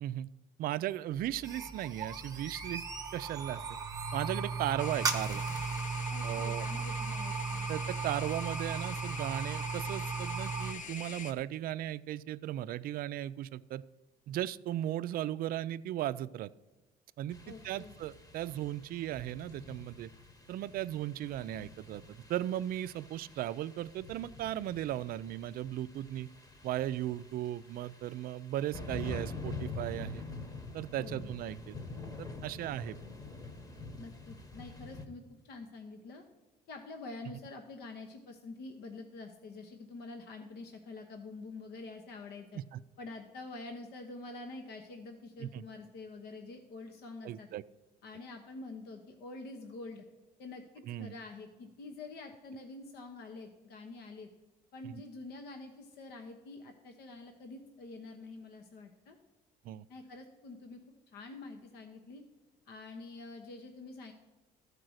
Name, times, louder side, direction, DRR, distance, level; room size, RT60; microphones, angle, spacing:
voice 1, 0.6-2.8 3.1-3.8 4.1-5.5 6.2-6.7 7.7-13.8 14.3-16.5 17.2-17.4 17.6-20.1 20.5-22.0 22.3-26.3 26.6-30.2 30.7-31.8 32.2-33.0 42.5-42.8 45.4-45.6 47.2-47.6 50.9-51.1 54.8-54.9 59.6-59.9, right 13 dB, 60° right, 15 dB, 0.4 m, -36 dB
sound 1, 1.1-10.7, right 5 dB, 20° right, 1.0 m, -36 dB
sound 2, 4.8-11.3, left 5 dB, 50° left, 0.9 m, -44 dB
voice 2, 6.1-7.7 17.5-17.9 31.0-31.4 34.0-36.2 36.7-42.6 43.0-47.5 48.0-50.0 50.4-54.3 54.7-59.2 59.9-60.8 61.1-62.2 62.7-64.1, left 3 dB, 70° left, 4 dB, 1.1 m, -47 dB
sound 3, 17.3-35.0, left 3 dB, 20° left, 1.1 m, -46 dB
13.0 x 4.8 x 6.4 m, 1.1 s
cardioid pair, 110°, 17 cm